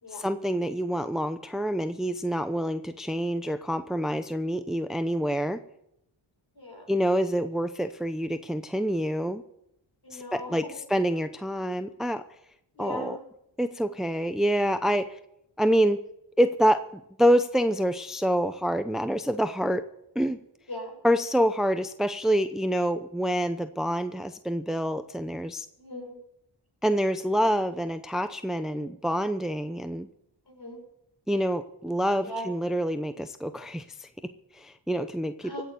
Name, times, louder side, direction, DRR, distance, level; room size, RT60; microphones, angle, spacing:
voice 1, 0.1-5.6 6.9-9.4 10.1-10.6 10.9-12.2 12.8-13.2 13.6-15.2 15.6-16.0 16.4-19.8 20.2-20.4 21.0-25.7 26.8-30.1 31.3-35.5, equal, ahead, 10 dB, 0.7 m, -27 dB
voice 2, 6.6-6.9 10.0-10.8 12.8-13.2 20.7-21.0 25.8-26.2 28.7-28.9 30.5-30.8 32.2-32.5 35.4-35.6, equal, 50° left, 2 dB, 5.7 m, -39 dB
16.5 x 7.0 x 9.1 m, 0.77 s
cardioid pair, 55°, 47 cm